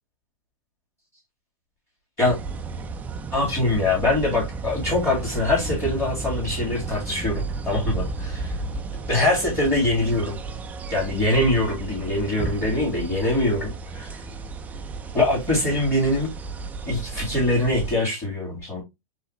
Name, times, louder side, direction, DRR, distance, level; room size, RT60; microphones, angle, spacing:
sound 1, 2.2-18.0, right 3 dB, 10° right, 0.3 m, -33 dB
voice 1, 3.3-8.6 9.1-10.4 10.9-14.2 15.1-16.3 16.9-18.8, left 2 dB, 15° left, 2.1 m, -23 dB
4.8 x 3.2 x 3.1 m
hypercardioid pair, 145°, 18 cm